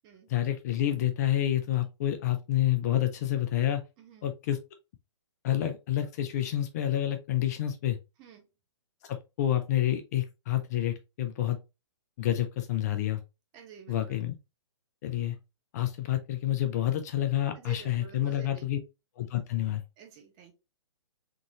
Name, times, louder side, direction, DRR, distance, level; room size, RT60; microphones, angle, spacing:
voice 1, 0.3-3.8 4.2-4.6 5.4-8.0 9.1-11.6 12.2-13.2 13.9-14.4 15.0-15.4 15.7-18.8 19.2-19.8, left 12 dB, 35° left, 0.6 m, -28 dB
voice 2, 4.0-4.3 8.2-8.5 13.5-14.2 17.5-18.7 20.0-20.5, right 7 dB, 25° right, 1.0 m, -49 dB
3.8 x 3.7 x 3.0 m
figure-of-eight pair, 125°, 16 cm